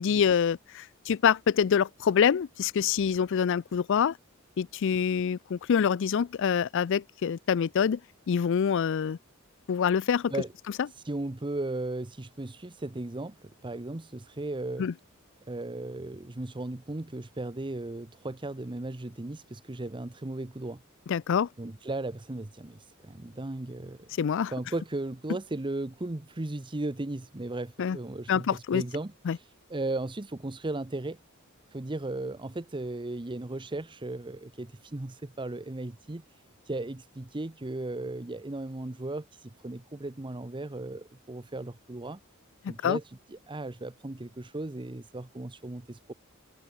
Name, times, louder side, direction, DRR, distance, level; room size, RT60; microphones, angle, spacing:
voice 1, 0.0-4.2 4.6-8.0 8.3-9.2 9.7-10.3 14.8-14.9 21.1-21.5 24.2-24.5 27.8-28.0 28.3-28.8 29.3-29.4 42.8-43.0, left 7 dB, 60° left, 0.4 m, -25 dB
voice 2, 11.0-14.9 15.5-20.8 21.6-24.1 24.5-29.4 29.7-31.2 31.7-36.2 36.7-42.2 42.7-43.0 43.3-46.1, right 2 dB, 25° right, 0.8 m, -36 dB
head